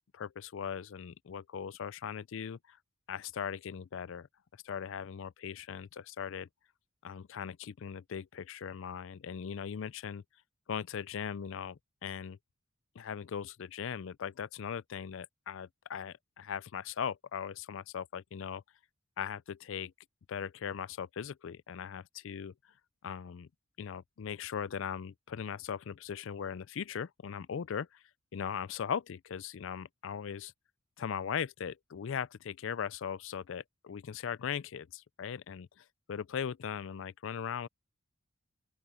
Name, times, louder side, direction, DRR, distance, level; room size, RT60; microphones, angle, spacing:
voice 1, 0.1-2.8 3.1-4.3 4.6-6.5 7.0-10.2 10.7-12.4 13.0-18.6 19.2-19.9 20.3-22.5 23.0-23.5 23.8-28.0 28.3-30.5 31.0-37.7, left 7 dB, 60° left, 0.4 m, -39 dB
open air
head